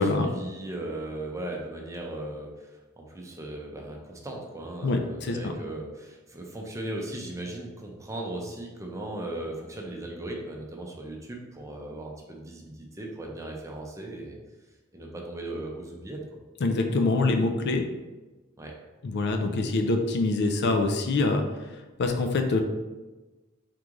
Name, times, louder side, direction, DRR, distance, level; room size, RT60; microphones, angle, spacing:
voice 1, 0.0-14.4 14.9-16.2 18.6-18.7, right 1 dB, 15° right, -1 dB, 0.6 m, -37 dB
voice 2, 4.8-5.5 16.6-17.8 19.0-21.4 22.0-22.6, left 3 dB, 55° left, 5 dB, 0.4 m, -25 dB
3.7 x 3.1 x 3.7 m, 1.2 s
head